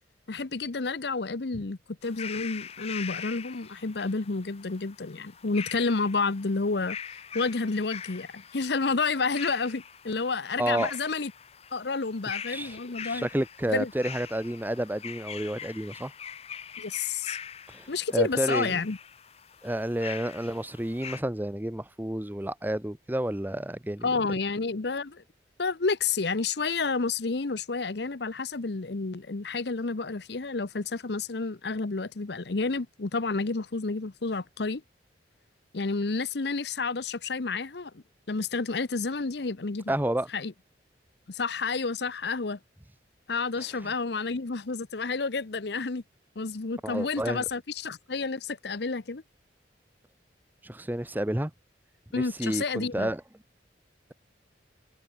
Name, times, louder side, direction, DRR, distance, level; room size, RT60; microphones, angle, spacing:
voice 1, 0.3-11.3 11.7-13.3 13.7-13.9 16.8-17.4 17.9-19.0 24.0-25.2 25.6-34.8 35.7-39.9 40.3-40.5 41.3-42.6 43.3-46.0 46.4-49.2 52.1-53.1, left 4 dB, 65° left, 0.8 m, -30 dB
sound 1, 2.0-21.2, left 8 dB, 35° left, 0.7 m, -42 dB
voice 2, 10.6-10.9 12.5-16.1 17.7-18.8 19.6-24.1 39.9-40.3 43.8-43.9 46.8-47.4 50.6-51.5 52.1-53.2, right 1 dB, 10° right, 0.7 m, -30 dB
head